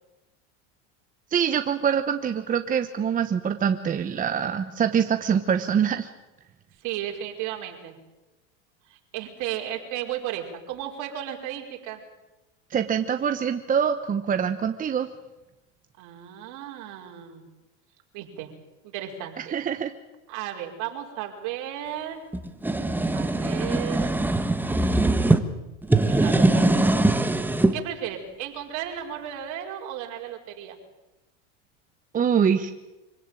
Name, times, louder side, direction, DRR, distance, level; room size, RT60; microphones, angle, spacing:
voice 1, 1.3-6.1 12.7-15.1 19.4-19.9 32.1-32.7, right 7 dB, 25° right, 8 dB, 1.1 m, -24 dB
voice 2, 6.8-7.9 8.9-12.0 16.0-17.5 18.1-18.5 18.8-19.5 20.3-22.2 23.1-24.2 26.1-26.6 27.7-30.8, right 11 dB, 55° right, 2 dB, 5.1 m, -34 dB
sound 1, 22.3-25.4 25.8-27.7, right 2 dB, 5° right, 1.3 m, -21 dB
25.5 x 17.0 x 9.1 m, 1.0 s
supercardioid pair, 125°, 36 cm